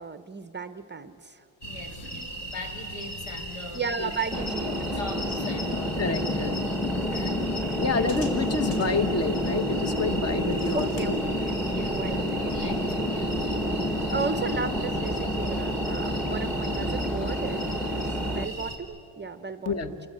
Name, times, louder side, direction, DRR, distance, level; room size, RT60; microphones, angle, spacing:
voice 1, 0.0-1.5 2.0-2.3 3.7-4.8 10.7-12.4 14.1-20.0, right 5 dB, 20° right, 11 dB, 0.6 m, -35 dB
voice 2, 1.6-3.9 4.4-6.0 7.1-8.2 11.7-13.4, left 3 dB, 90° left, 5 dB, 2.7 m, -42 dB
sound 1, 1.6-18.8, right 1 dB, 55° left, 3.8 m, -38 dB
sound 2, 4.3-18.5, equal, ahead, 0.9 m, -29 dB
voice 3, 6.0-6.6 7.8-11.2 19.6-19.9, left 4 dB, 30° left, 10 dB, 1.1 m, -28 dB
28.5 x 23.0 x 8.6 m, 2.9 s
wide cardioid pair, 175°, 49 cm